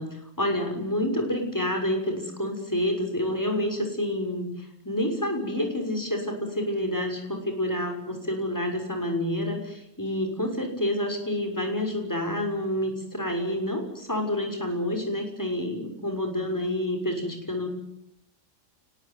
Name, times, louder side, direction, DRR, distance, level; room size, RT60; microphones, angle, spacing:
voice 1, 0.0-17.7, left 1 dB, 15° left, 3 dB, 6.3 m, -28 dB
29.5 x 20.5 x 9.6 m, 0.78 s
omnidirectional pair, 1.3 m